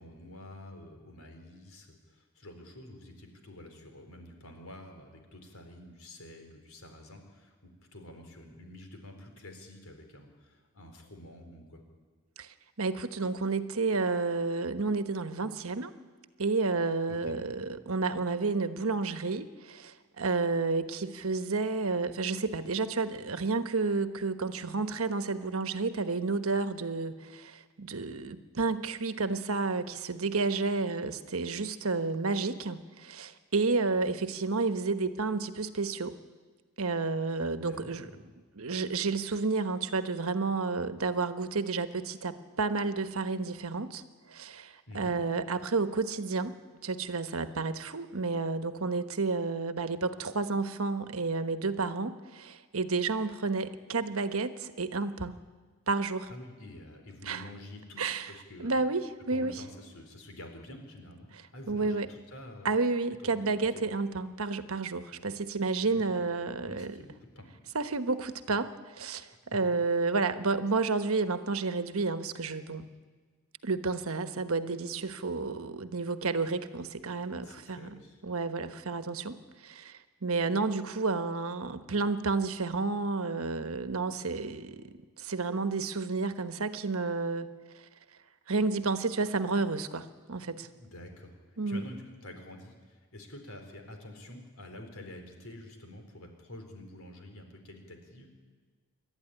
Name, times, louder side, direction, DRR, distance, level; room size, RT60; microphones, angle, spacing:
voice 1, 0.0-11.8 17.1-17.3 37.6-38.3 44.9-45.1 56.3-58.8 59.3-62.7 63.2-63.8 65.1-65.4 65.8-66.3 66.6-67.5 77.4-78.2 90.8-91.3 91.7-98.3, left 1 dB, 70° left, 4 dB, 4.2 m, -48 dB
voice 2, 12.4-15.9 16.4-36.2 36.8-38.1 38.5-44.0 44.3-55.4 55.9-56.3 57.3-57.4 58.0-58.3 58.6-59.5 61.7-62.1 62.6-67.0 67.7-72.9 73.6-87.5 88.5-90.7 91.6-91.8, right 3 dB, 75° right, 10 dB, 1.2 m, -31 dB
27.5 x 12.5 x 10.0 m, 1.5 s
head